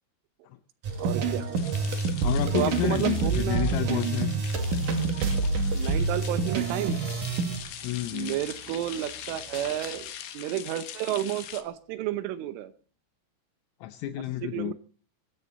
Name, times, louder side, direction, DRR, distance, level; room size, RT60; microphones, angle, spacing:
sound 1, 0.8-10.4 11.3-11.5, right 1 dB, 30° right, 7.4 m, -50 dB
sound 2, 0.8-7.6, right 4 dB, 50° right, 3.1 m, -27 dB
voice 1, 1.0-1.5 2.5-3.8 5.7-7.0 8.1-12.7 14.4-14.7, right 13 dB, 80° right, 12 dB, 3.3 m, -31 dB
sound 3, 1.5-11.6, left 10 dB, 65° left, 3.0 m, -43 dB
voice 2, 2.2-4.4 7.8-8.4 13.8-14.7, left 14 dB, 80° left, 9 dB, 3.4 m, -30 dB
24.0 x 13.0 x 4.1 m, 0.42 s
omnidirectional pair, 6.0 m